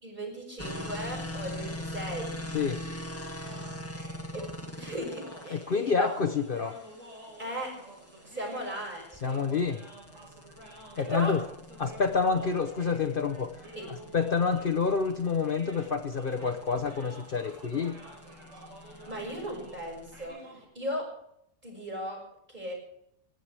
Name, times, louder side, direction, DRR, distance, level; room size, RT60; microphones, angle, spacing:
voice 1, 0.0-2.4 4.3-4.5 4.7-6.1 7.4-7.7 8.2-9.5 11.0-11.3 13.7-13.8 18.8-20.4 20.7-21.1 21.6-22.2 22.5-22.7, equal, 35° right, 1 dB, 6.5 m, -37 dB
sound 1, 0.6-20.2, left 1 dB, 10° left, 1.7 m, -43 dB
sound 2, 3.4-20.7, right 1 dB, 90° right, 5.2 m, -50 dB
voice 2, 5.5-6.8 9.2-9.8 11.0-11.4 11.8-13.6 13.9-18.0, left 5 dB, 50° left, 7 dB, 1.0 m, -28 dB
21.0 x 15.0 x 3.4 m, 0.74 s
omnidirectional pair, 1.3 m